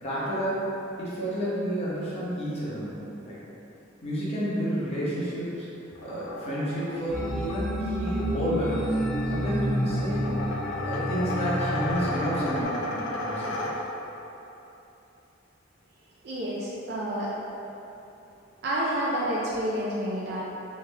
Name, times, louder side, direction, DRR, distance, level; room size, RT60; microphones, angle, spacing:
voice 1, 0.0-0.7 1.0-3.4 4.0-5.7 6.0-9.0 9.3-10.5 10.8-13.6, equal, 30° left, -9 dB, 1.0 m, -30 dB
sound 1, 5.9-14.2, left 1 dB, 75° left, 0.4 m, -35 dB
sound 2, 7.1-12.6, equal, 5° left, 1.0 m, -30 dB
voice 2, 16.2-17.3 18.6-20.4, equal, 55° right, -7 dB, 0.5 m, -29 dB
3.3 x 3.3 x 3.3 m, 3.0 s
head